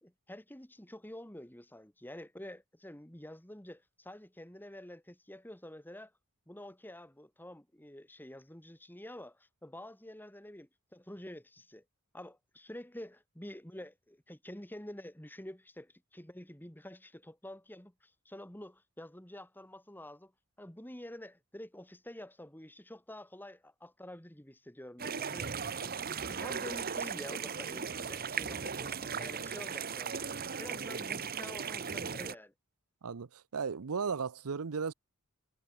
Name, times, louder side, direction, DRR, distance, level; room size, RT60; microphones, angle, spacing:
voice 1, 0.0-6.1 6.5-11.8 12.1-20.3 20.6-32.5, left 1 dB, 10° left, 2.0 m, -48 dB
sound 1, 25.0-32.4, right 6 dB, 40° right, 1.1 m, -37 dB
voice 2, 33.0-34.9, right 5 dB, 80° right, 0.7 m, -35 dB
head